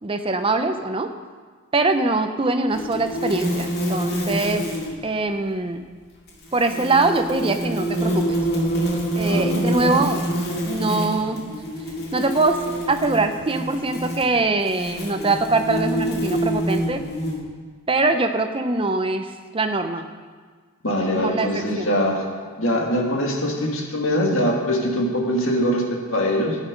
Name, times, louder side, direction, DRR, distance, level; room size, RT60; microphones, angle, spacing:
voice 1, 0.0-1.1 1.7-4.7 5.0-5.8 6.5-8.4 9.1-10.3 10.7-11.4 12.1-12.6 12.9-17.0 17.9-20.1 21.1-21.9, right 3 dB, 25° right, 7 dB, 0.7 m, -23 dB
sound 1, 2.7-5.0 6.3-17.4, equal, 45° left, 2.2 m, -26 dB
voice 2, 9.3-10.1 20.8-22.2 22.6-26.6, equal, 60° left, 0 dB, 2.0 m, -23 dB
14.0 x 9.3 x 5.3 m, 1.5 s
head